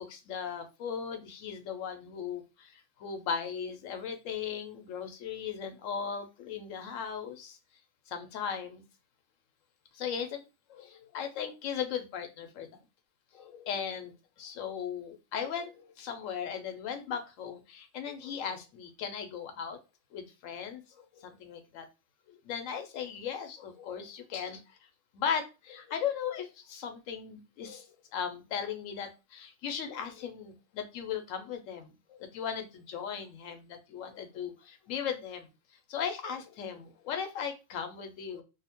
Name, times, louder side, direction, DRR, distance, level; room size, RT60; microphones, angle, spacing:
voice 1, 0.0-7.6 8.1-8.8 9.9-10.4 10.7-12.7 13.4-19.8 20.1-21.9 22.3-24.6 25.1-35.5 35.9-38.4, left 7 dB, 85° left, 7 dB, 1.0 m, -37 dB
2.7 x 2.1 x 2.7 m, 0.28 s
omnidirectional pair, 1.3 m